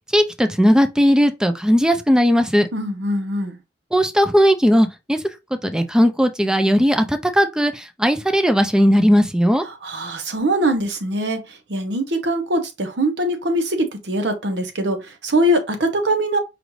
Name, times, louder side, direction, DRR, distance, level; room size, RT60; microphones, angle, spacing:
voice 1, 0.1-2.7 3.9-5.2 5.6-9.6, equal, 5° right, 0.4 m, -17 dB
voice 2, 2.7-3.6 9.8-16.4, right 1 dB, 70° right, 0.9 m, -22 dB
5.0 x 2.5 x 3.1 m
head